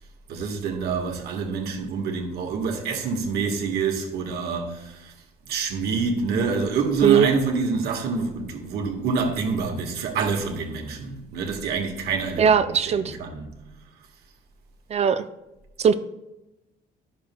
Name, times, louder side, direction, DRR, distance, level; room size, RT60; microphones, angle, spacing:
voice 1, 0.3-5.1 5.5-12.5 12.8-13.5, right 5 dB, 70° right, 1.5 m, -26 dB
voice 2, 12.4-13.1 14.9-15.2 15.8-15.9, right 7 dB, 40° right, 0.4 m, -19 dB
11.0 x 6.6 x 2.3 m
cardioid pair, 110°, 17 cm